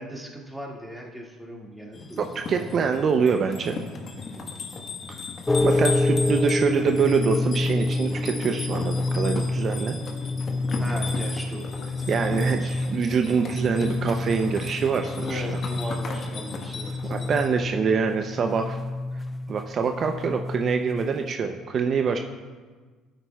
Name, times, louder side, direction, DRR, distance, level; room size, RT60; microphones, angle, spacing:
voice 1, 0.0-2.3 10.8-11.9 15.2-17.4 17.7-18.0, equal, 5° right, -2 dB, 2.0 m, -38 dB
sound 1, 1.9-17.5, left 4 dB, 45° left, 1.3 m, -36 dB
voice 2, 2.2-3.8 5.6-10.0 12.1-15.4 17.0-18.8 19.5-22.2, right 6 dB, 50° right, 5 dB, 0.6 m, -25 dB
sound 2, 5.5-21.3, left 2 dB, 15° left, 0.3 m, -28 dB
12.5 x 8.9 x 2.3 m, 1.4 s
supercardioid pair, 75°, 0 cm